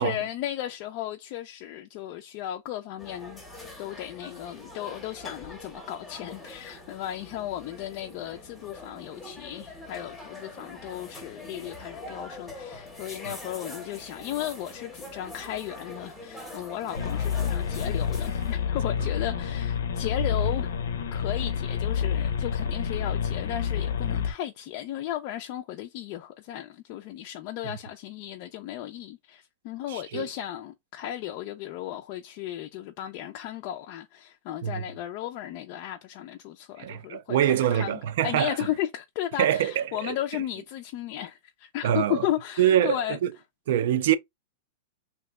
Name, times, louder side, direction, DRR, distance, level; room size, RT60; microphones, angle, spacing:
voice 1, 0.0-3.4 3.8-20.7 21.1-43.2, left 12 dB, 40° left, 0.3 m, -35 dB
sound 1, 3.0-18.6, left 2 dB, 5° left, 0.8 m, -44 dB
sound 2, 16.9-24.3, left 7 dB, 85° left, 0.6 m, -28 dB
voice 2, 29.9-30.3 34.6-34.8 36.8-38.6 39.4-40.4 41.8-42.3 42.6-43.3 43.7-44.2, right 11 dB, 60° right, 0.4 m, -25 dB
2.8 x 2.1 x 3.4 m
supercardioid pair, 160°, 0 cm